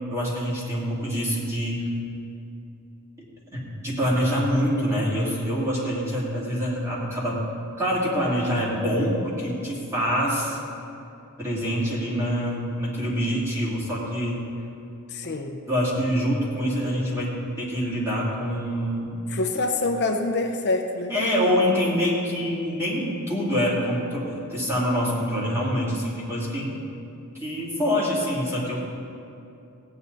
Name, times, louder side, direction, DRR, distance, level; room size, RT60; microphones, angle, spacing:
voice 1, 0.0-1.8 3.5-7.4 7.8-10.6 11.4-14.4 15.7-17.3 17.6-19.2 21.1-26.7 27.4-28.8, equal, 10° right, -7 dB, 2.8 m, -25 dB
voice 2, 15.1-15.6 19.3-21.1, left 2 dB, 50° left, 3 dB, 0.6 m, -26 dB
16.5 x 9.4 x 4.1 m, 2.7 s
head